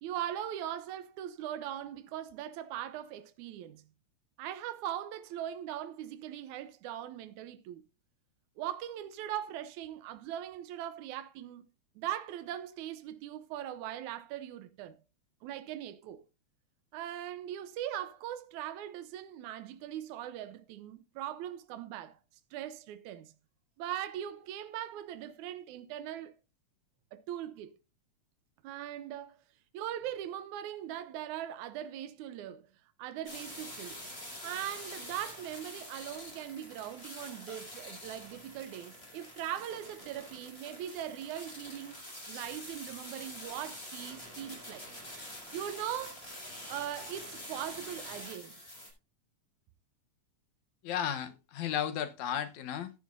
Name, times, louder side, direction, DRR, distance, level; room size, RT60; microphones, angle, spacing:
voice 1, 0.0-3.8 4.4-7.8 8.6-11.6 12.0-15.0 15.4-16.2 16.9-22.2 22.5-23.3 23.8-26.3 27.1-27.7 28.6-29.4 29.7-32.6 33.0-34.0 34.4-42.0 42.3-44.8 45.5-46.3 46.7-48.5, right 11 dB, 85° right, 2.2 m, -40 dB
sound 1, 33.3-48.9, left 1 dB, 20° left, 6.8 m, -46 dB
voice 2, 50.8-52.9, left 9 dB, 80° left, 2.3 m, -34 dB
15.0 x 11.0 x 2.6 m
omnidirectional pair, 3.4 m